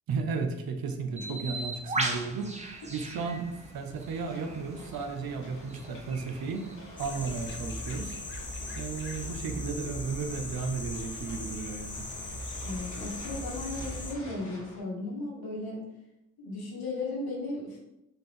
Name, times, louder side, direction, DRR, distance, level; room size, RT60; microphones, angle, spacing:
voice 1, 0.1-2.6 2.9-6.7 7.0-8.2 8.7-12.1, right 4 dB, 65° right, 5 dB, 0.7 m, -34 dB
Bird, 1.2-7.6, right 2 dB, 20° right, 0.7 m, -38 dB
sound 1, 4.1-14.8, left 1 dB, 50° left, 1.5 m, -49 dB
sound 2, 7.0-14.1, left 1 dB, 30° left, 0.7 m, -38 dB
voice 2, 12.6-15.8 16.4-17.8, left 2 dB, 70° left, -2 dB, 1.3 m, -36 dB
4.0 x 2.5 x 3.4 m, 0.89 s
supercardioid pair, 50°, 38 cm